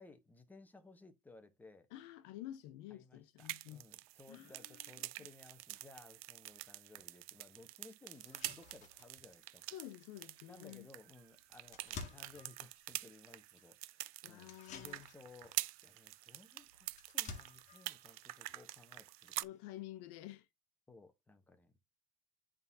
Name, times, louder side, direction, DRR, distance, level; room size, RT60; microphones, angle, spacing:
voice 1, 0.0-1.9 2.9-9.7 10.5-19.3 20.9-21.7, left 3 dB, 10° left, 1.0 m, -59 dB
voice 2, 1.9-3.8 4.3-5.0 9.7-10.9 14.2-15.0 19.4-20.5, left 14 dB, 70° left, 0.9 m, -50 dB
sound 1, 3.4-19.4, right 19 dB, 90° right, 0.4 m, -47 dB
sound 2, 7.1-7.2 7.7-7.8 8.1-19.8, left 5 dB, 40° left, 1.6 m, -56 dB
10.5 x 3.7 x 2.7 m
supercardioid pair, 135°, 18 cm